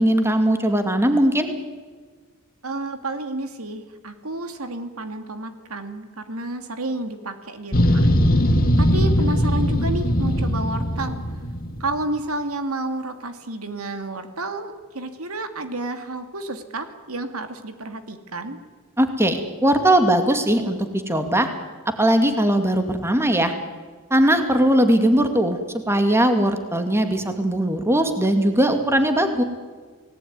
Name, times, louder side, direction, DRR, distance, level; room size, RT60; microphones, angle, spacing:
voice 1, 0.0-1.5 19.0-21.5 22.0-23.5 24.1-25.6 25.9-29.4, right 1 dB, 10° right, 7 dB, 2.3 m, -19 dB
voice 2, 2.6-8.1 8.8-11.2 11.8-18.6, right 2 dB, 75° right, 8 dB, 2.5 m, -30 dB
sound 1, 7.7-11.9, equal, 40° left, 2.1 m, -20 dB
29.5 x 19.0 x 9.6 m, 1.5 s
head